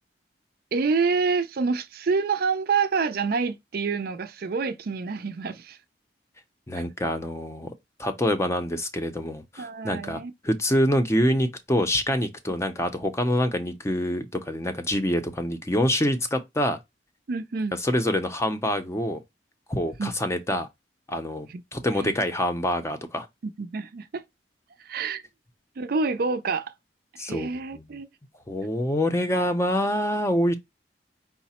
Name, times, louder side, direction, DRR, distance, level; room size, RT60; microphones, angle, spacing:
voice 1, 0.7-5.8 6.7-6.8 9.6-10.3 17.3-17.8 20.0-20.1 21.5-21.6 21.9-22.1 23.6-24.2 24.8-25.2 25.8-26.7 27.2-28.1, right 4 dB, 55° right, 0.4 m, -27 dB
voice 2, 6.7-7.7 8.0-16.8 17.8-19.2 19.7-20.7 21.1-23.3 27.2-27.8 28.5-30.6, left 1 dB, 15° left, 0.5 m, -26 dB
4.7 x 2.0 x 4.2 m
head